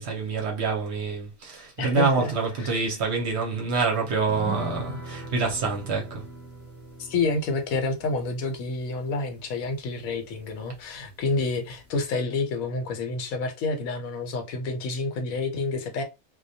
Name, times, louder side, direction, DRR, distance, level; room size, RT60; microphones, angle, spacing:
voice 1, 0.0-6.2, right 4 dB, 60° right, 0.8 m, -26 dB
voice 2, 1.8-2.3 2.6-2.8 7.0-16.0, left 3 dB, 75° left, 1.1 m, -29 dB
sound 1, 4.3-11.1 11.4-11.5 11.8-12.0, right 1 dB, 10° right, 0.5 m, -41 dB
2.3 x 2.1 x 2.6 m
omnidirectional pair, 1.5 m